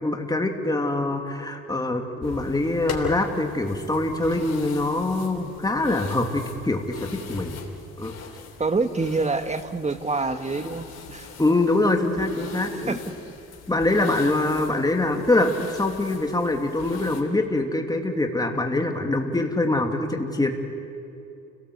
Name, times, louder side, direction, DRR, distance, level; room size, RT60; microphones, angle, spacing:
voice 1, 0.0-7.6 8.0-8.1 11.4-13.0 13.7-20.5, left 2 dB, 15° left, 3 dB, 2.7 m, -24 dB
sound 1, 2.2-17.2, left 5 dB, 55° left, 3.4 m, -40 dB
voice 2, 8.6-11.3 12.9-13.0, right 3 dB, 25° right, 9 dB, 1.5 m, -26 dB
30.0 x 18.5 x 8.1 m, 2.7 s
cardioid pair, 90°, 30 cm